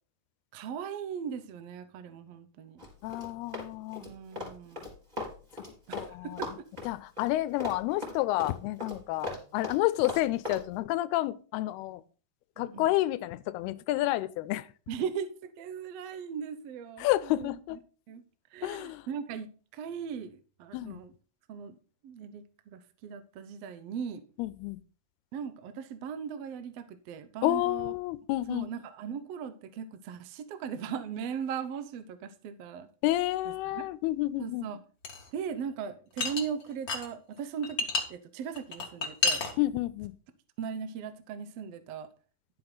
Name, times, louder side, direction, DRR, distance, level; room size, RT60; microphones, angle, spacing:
voice 1, 0.5-2.8 4.0-4.9 5.9-6.5 12.6-12.8 14.9-17.5 18.1-18.2 18.5-19.5 19.8-21.1 21.5-21.7 22.0-24.2 25.3-27.9 28.5-32.9 33.7-33.8 34.4-34.8 35.3-39.4 40.6-42.1, right 7 dB, 85° right, 1.4 m, -38 dB
Run, 2.8-6.1 6.4-10.6, left 2 dB, 10° right, 4.3 m, -38 dB
voice 2, 3.0-4.0 5.9-6.6 6.8-12.0 12.6-14.7 17.0-17.8 18.6-19.1 20.7-21.0 24.4-24.8 27.4-28.7 33.0-34.7 39.6-40.1, left 16 dB, 85° left, 2.6 m, -30 dB
sound 1, 35.0-35.2 36.2-37.1 37.4-38.0 38.5-39.5, left 4 dB, 55° left, 1.0 m, -29 dB
12.0 x 7.8 x 4.0 m
omnidirectional pair, 4.5 m